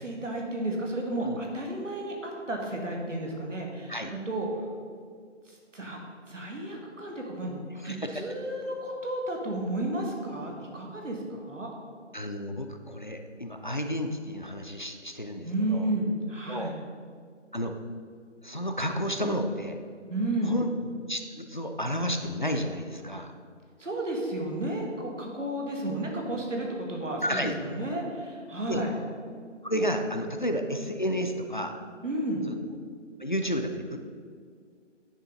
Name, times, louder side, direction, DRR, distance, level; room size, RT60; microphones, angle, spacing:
voice 1, 0.0-4.5 5.5-6.0 6.3-11.7 15.4-16.8 20.1-20.6 23.8-28.9 32.0-32.4, right 1 dB, 80° right, 0 dB, 1.8 m, -32 dB
voice 2, 7.8-8.2 12.1-15.9 16.5-16.7 17.5-17.7 18.4-19.8 20.4-20.7 21.1-23.3 27.2-27.5 28.7-28.9 29.6-31.7 32.5-32.8 33.2-34.0, equal, 40° left, 4 dB, 0.4 m, -31 dB
9.8 x 4.8 x 3.8 m, 2.1 s
figure-of-eight pair, 160°, 37 cm